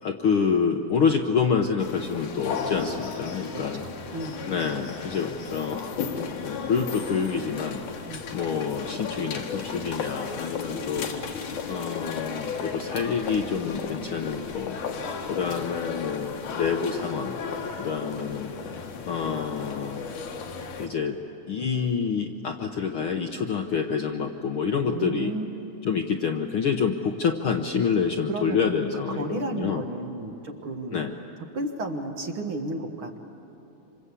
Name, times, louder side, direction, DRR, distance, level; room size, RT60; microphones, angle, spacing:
voice 1, 0.0-3.9 4.5-5.9 6.4-7.8 8.3-11.1 11.7-14.8 15.3-17.4 17.8-18.5 19.1-20.0 20.8-21.2 21.5-25.3 25.8-29.8 30.9-31.1, left 6 dB, 65° left, 4 dB, 1.4 m, -27 dB
sound 1, 1.8-20.9, left 5 dB, 80° left, 3.2 m, -34 dB
voice 2, 3.5-4.4 8.1-8.2 24.8-25.6 28.3-28.6 29.2-31.0 31.5-33.2, right 2 dB, 50° right, 4 dB, 1.9 m, -33 dB
27.0 x 26.5 x 8.4 m, 2.9 s
omnidirectional pair, 3.4 m